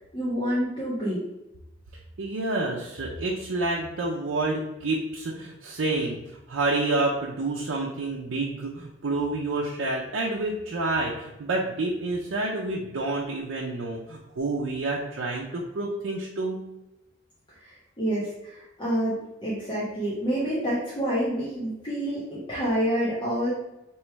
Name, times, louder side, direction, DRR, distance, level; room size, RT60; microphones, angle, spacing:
voice 1, 0.1-1.2 17.6-23.5, equal, 25° left, -9 dB, 1.0 m, -28 dB
voice 2, 2.2-16.6, right 2 dB, 85° right, -3 dB, 0.6 m, -29 dB
3.1 x 3.0 x 4.5 m, 0.95 s
head